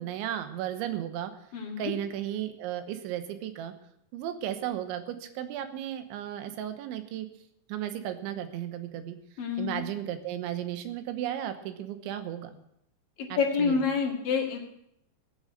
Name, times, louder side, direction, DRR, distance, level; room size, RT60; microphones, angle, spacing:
voice 1, 0.0-1.3 1.8-3.7 4.1-7.3 7.7-9.2 9.6-12.6 13.3-13.8, right 11 dB, 75° right, 9 dB, 3.3 m, -34 dB
voice 2, 1.5-1.9 9.4-9.8 13.2-14.6, left 5 dB, 55° left, 0 dB, 3.2 m, -28 dB
16.5 x 8.9 x 6.6 m, 0.74 s
omnidirectional pair, 5.6 m